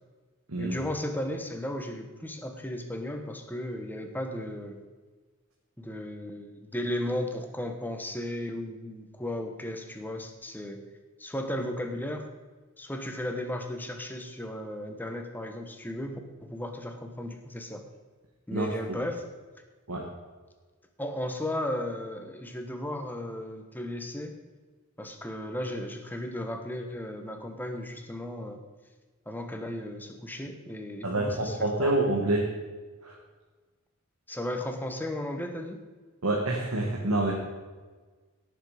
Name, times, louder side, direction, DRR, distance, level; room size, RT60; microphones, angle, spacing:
voice 1, 0.6-4.8 5.8-10.8 11.2-12.3 12.8-17.8 18.5-19.2 21.0-24.4 25.0-28.6 29.3-31.9 34.3-35.8, left 1 dB, 10° left, 5 dB, 1.2 m, -35 dB
voice 2, 18.5-19.0 19.9-20.1 31.0-32.5 33.0-33.2 36.2-37.3, right 2 dB, 90° right, 0 dB, 1.7 m, -27 dB
17.0 x 7.3 x 5.1 m, 1.4 s
head